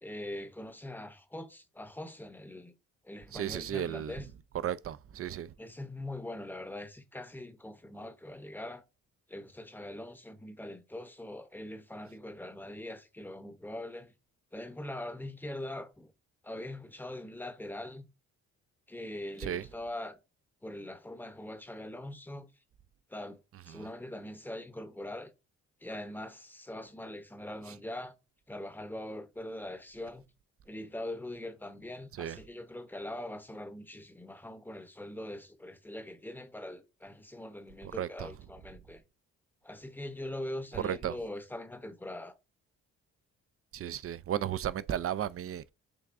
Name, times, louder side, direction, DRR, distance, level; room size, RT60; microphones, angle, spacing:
voice 1, 0.0-2.8 3.0-4.3 5.6-8.8 9.3-14.1 14.5-16.1 16.4-18.1 18.9-20.2 20.6-22.5 23.1-23.4 23.7-25.3 25.8-28.1 28.5-30.3 30.7-39.0 39.6-42.4, left 1 dB, 5° left, 0.8 m, -42 dB
voice 2, 3.3-4.1 4.6-5.5 19.4-19.6 23.7-23.9 32.1-32.4 37.8-38.3 40.7-41.2 43.7-45.7, right 10 dB, 40° right, 0.4 m, -34 dB
6.8 x 2.3 x 2.5 m
supercardioid pair, 50°, 36 cm